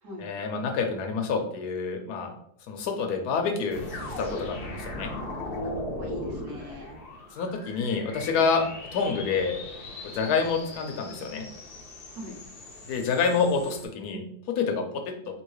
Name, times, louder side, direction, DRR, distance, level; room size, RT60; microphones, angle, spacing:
voice 1, 0.2-2.3 2.7-3.9 4.2-5.1 7.4-8.6 8.9-9.6 10.0-11.4 12.9-14.2 14.6-14.8, left 5 dB, 75° left, 4 dB, 1.2 m, -27 dB
sound 1, 3.7-13.8, left 2 dB, 55° left, 0.6 m, -39 dB
voice 2, 5.5-7.0 8.5-8.7 12.1-12.4, right 1 dB, 80° right, -4 dB, 1.7 m, -39 dB
3.7 x 2.8 x 3.1 m, 0.71 s
omnidirectional pair, 1.7 m